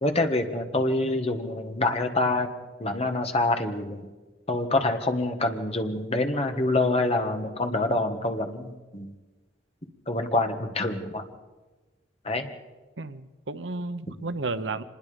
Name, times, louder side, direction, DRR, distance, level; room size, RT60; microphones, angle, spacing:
voice 1, 0.0-2.5 2.8-4.1 4.5-9.1 10.1-11.2 12.2-12.5, left 2 dB, 35° left, 5 dB, 1.9 m, -26 dB
voice 2, 13.0-14.8, right 3 dB, 75° right, 12 dB, 1.0 m, -32 dB
25.5 x 20.5 x 5.3 m, 1.2 s
head